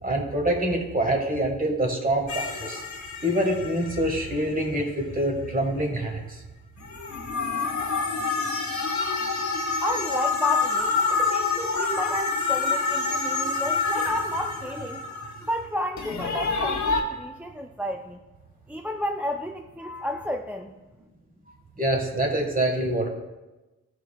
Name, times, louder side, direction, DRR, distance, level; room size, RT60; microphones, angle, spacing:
voice 1, 0.0-2.8 3.2-6.4 21.8-23.1, right 1 dB, 30° right, 2 dB, 1.5 m, -25 dB
sound 1, 2.3-4.5 6.8-15.6 16.0-17.0, left 4 dB, 65° left, 1.1 m, -27 dB
voice 2, 9.8-15.0 15.5-18.2 18.7-20.7, left 1 dB, 5° right, 4 dB, 0.4 m, -32 dB
13.5 x 4.6 x 2.3 m, 1.1 s
cardioid pair, 65°, 31 cm